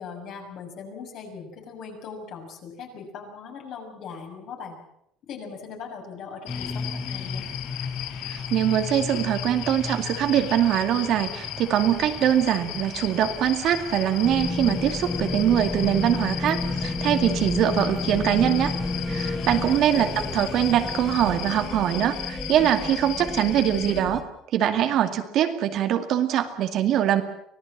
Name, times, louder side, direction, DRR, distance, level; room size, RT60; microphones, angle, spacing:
voice 1, 0.0-4.8 5.3-7.4 19.9-20.3, left 5 dB, 50° left, 2 dB, 6.5 m, -39 dB
sound 1, 6.5-24.0, left 13 dB, 70° left, 2.0 m, -37 dB
sound 2, 6.5-21.7, left 4 dB, 25° left, 3.4 m, -38 dB
voice 2, 8.3-18.8 19.1-24.2 24.5-27.2, right 10 dB, 50° right, 7 dB, 2.2 m, -23 dB
sound 3, 14.2-24.2, left 2 dB, 5° left, 3.2 m, -31 dB
25.0 x 18.0 x 7.5 m, 0.75 s
cardioid pair, 145°, 0 cm